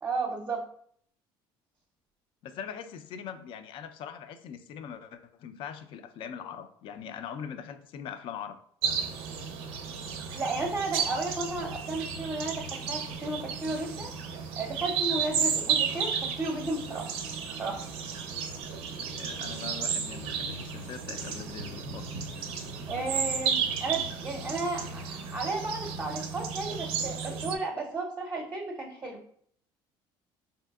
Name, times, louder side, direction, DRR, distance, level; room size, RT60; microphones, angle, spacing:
voice 1, 0.0-0.7 10.3-14.1 14.5-17.1 17.6-17.9 22.9-29.2, right 3 dB, 20° right, 0 dB, 0.6 m, -33 dB
voice 2, 2.4-8.6 19.0-22.1, left 7 dB, 60° left, 10 dB, 0.4 m, -41 dB
sound 1, 8.8-27.6, right 6 dB, 70° right, 0.4 m, -33 dB
4.0 x 2.7 x 2.3 m, 0.62 s
supercardioid pair, 100°, 10 cm